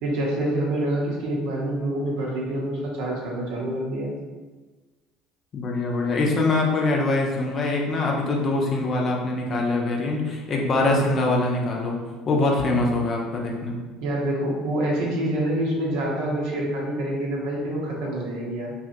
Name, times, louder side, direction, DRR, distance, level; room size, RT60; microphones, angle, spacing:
voice 1, 0.0-4.1 10.8-11.1 14.0-18.7, right 1 dB, 70° right, -3 dB, 0.7 m, -26 dB
voice 2, 5.5-12.0 12.3-13.7, left 2 dB, 45° left, 0 dB, 0.6 m, -23 dB
2.8 x 2.4 x 2.6 m, 1.3 s
hypercardioid pair, 65°, 0 cm